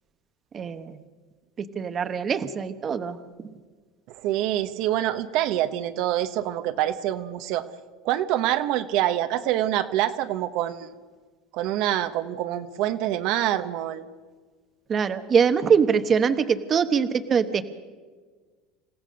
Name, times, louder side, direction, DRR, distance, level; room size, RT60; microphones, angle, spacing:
voice 1, 0.5-1.0 1.7-3.2 14.9-17.6, right 6 dB, 30° right, 10 dB, 1.0 m, -23 dB
voice 2, 4.1-7.7 8.0-10.9 11.5-14.0, right 13 dB, 65° right, 8 dB, 1.0 m, -26 dB
27.5 x 15.5 x 6.4 m, 1.5 s
supercardioid pair, 120°, 0 cm